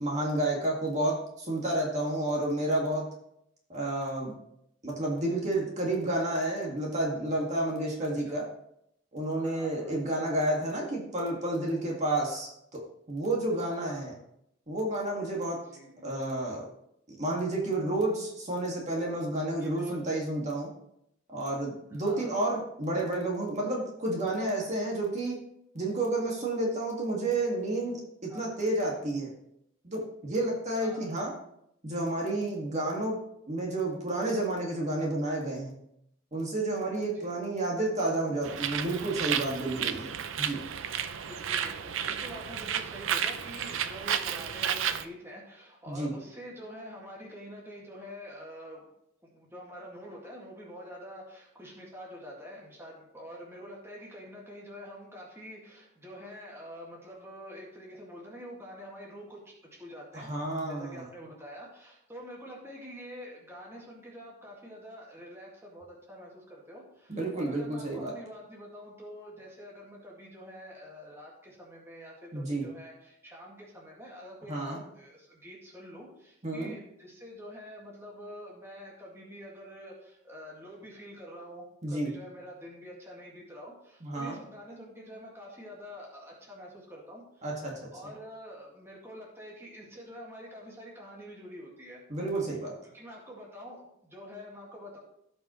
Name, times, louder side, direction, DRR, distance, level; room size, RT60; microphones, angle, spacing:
voice 1, 0.0-3.1 3.7-4.3 4.8-8.5 9.1-12.8 13.1-14.1 14.7-15.6 16.0-16.7 17.1-20.7 21.3-25.4 25.7-29.3 29.8-31.3 31.8-33.2 33.5-35.8 36.3-40.6 45.9-46.1 60.1-61.1 67.1-68.1 72.3-72.7 74.5-74.8 76.4-76.7 81.8-82.1 84.0-84.4 87.4-88.1 92.1-92.7, right 1 dB, 35° right, -2 dB, 1.8 m, -30 dB
voice 2, 9.4-10.0 12.3-12.4 13.6-14.0 15.7-16.3 19.6-20.0 22.0-22.3 28.3-28.5 30.8-31.1 37.2-37.4 41.2-48.8 49.2-60.3 60.7-87.5 87.9-92.0 92.8-95.0, equal, 10° right, -3 dB, 1.9 m, -46 dB
Bird, 38.4-45.0, right 8 dB, 65° right, 0.5 m, -32 dB
16.0 x 5.4 x 3.1 m, 0.76 s
head